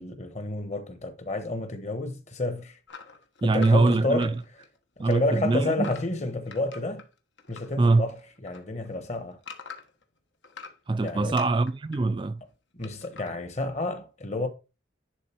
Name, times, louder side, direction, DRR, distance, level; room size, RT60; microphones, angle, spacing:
voice 1, 0.0-2.8 3.4-4.3 5.0-7.0 7.5-9.4 11.0-11.4 12.7-14.5, left 2 dB, 35° left, 1.3 m, -30 dB
sound 1, 2.9-7.7 8.1-10.0 10.4-12.0 12.8-13.3, left 5 dB, 80° left, 1.3 m, -44 dB
voice 2, 3.4-4.3 5.0-5.9 7.8-8.0 10.9-12.4, right 3 dB, 25° right, 0.3 m, -23 dB
10.5 x 3.9 x 4.5 m
head